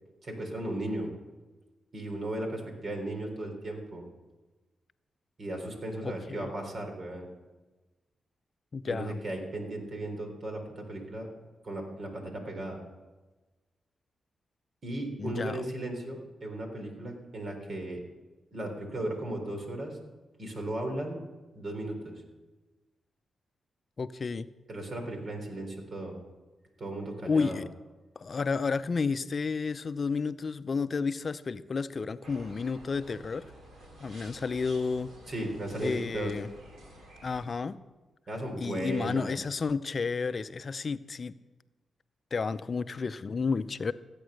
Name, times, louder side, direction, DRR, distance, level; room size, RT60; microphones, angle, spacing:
voice 1, 0.2-1.1 1.9-4.0 5.4-7.3 8.8-11.3 11.6-12.8 14.8-18.0 18.5-20.0 20.4-21.2 21.5-22.1 24.7-26.2 26.8-27.6 35.3-36.3 38.3-39.4, right 1 dB, 60° right, 2 dB, 3.9 m, -36 dB
voice 2, 6.0-6.5 8.7-9.2 15.2-15.6 24.0-24.5 27.3-27.7 28.2-33.5 34.0-35.1 35.8-36.5 37.2-37.8 38.6-41.3 42.3-43.9, left 4 dB, 50° left, 13 dB, 0.5 m, -31 dB
sound 1, 32.2-37.5, right 1 dB, 75° right, 3.2 m, -51 dB
15.5 x 8.7 x 6.5 m, 1.2 s
supercardioid pair, 50°, 0 cm